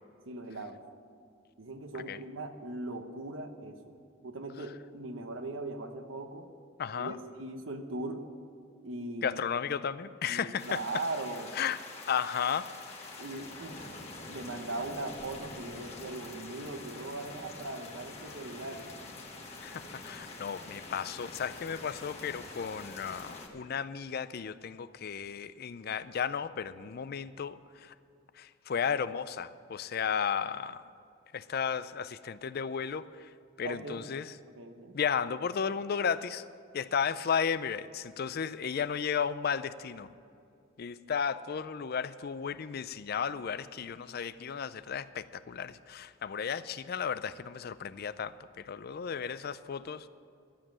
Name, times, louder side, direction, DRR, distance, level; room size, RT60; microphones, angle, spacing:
voice 1, 0.3-0.8 1.6-4.0 4.2-6.5 6.9-8.2 8.8-9.4 10.3-11.5 13.2-18.9 33.6-34.0 34.5-35.0, right 2 dB, 75° right, 6 dB, 1.1 m, -39 dB
voice 2, 6.8-7.2 9.2-10.8 11.5-11.8 12.1-12.7 19.6-27.9 28.4-30.8 31.3-33.3 33.6-34.4 34.9-36.4 36.7-40.1 40.8-50.1, left 7 dB, 50° left, 15 dB, 0.4 m, -34 dB
sound 1, 10.6-23.5, left 3 dB, 30° left, 1.6 m, -46 dB
12.5 x 7.6 x 8.9 m, 2.4 s
head